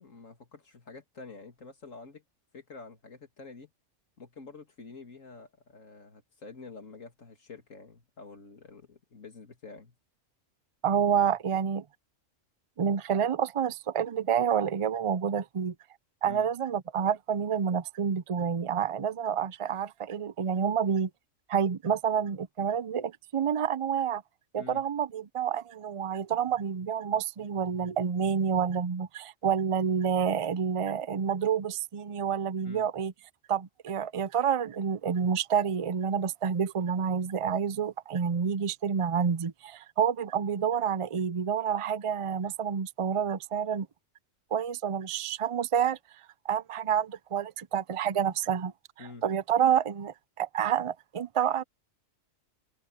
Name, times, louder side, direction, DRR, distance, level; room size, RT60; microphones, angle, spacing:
voice 1, 0.0-2.2 2.5-3.7 4.2-10.0 16.3-16.5 24.6-24.8 32.6-32.9 49.0-49.2, left 4 dB, 80° left, 2.7 m, -48 dB
voice 2, 10.8-11.8 12.8-15.7 16.2-21.1 21.5-24.2 24.5-33.1 33.5-43.9 44.5-46.0 46.4-48.7 49.0-51.6, right 7 dB, 60° right, 0.3 m, -28 dB
open air
omnidirectional pair, 1.3 m